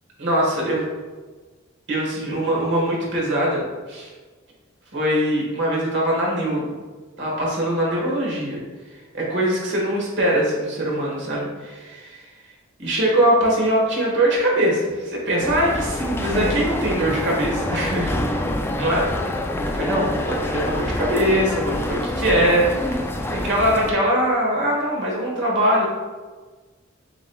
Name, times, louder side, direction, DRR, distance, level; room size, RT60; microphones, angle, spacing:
voice 1, 0.2-0.8 1.9-3.6 3.9-4.1 4.9-6.8 7.2-8.6 9.1-12.2 12.8-18.1 18.8-19.0 19.7-25.9, right 1 dB, 60° right, -3 dB, 1.5 m, -22 dB
sound 1, 15.4-23.9, left 1 dB, 10° left, 0.3 m, -26 dB
7.2 x 3.0 x 2.3 m, 1.3 s
head